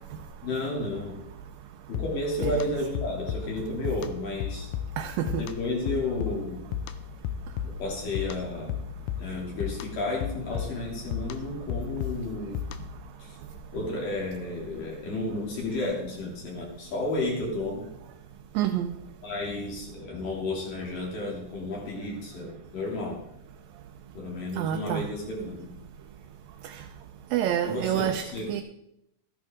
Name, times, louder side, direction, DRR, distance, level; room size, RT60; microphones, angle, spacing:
voice 1, 0.4-1.2 1.9-4.7 5.4-6.7 7.6-8.8 9.2-12.6 13.2-13.4 13.7-17.9 19.2-23.2 24.1-25.7 27.7-28.6, left 2 dB, 65° left, -2 dB, 4.5 m, -32 dB
sound 1, 1.9-13.1, left 9 dB, 80° left, 2.4 m, -35 dB
voice 2, 5.0-5.4 18.6-19.0 24.6-25.0 27.3-28.2 28.5-28.6, right 11 dB, 75° right, 4 dB, 2.3 m, -27 dB
13.5 x 11.0 x 3.8 m, 0.79 s
omnidirectional pair, 4.3 m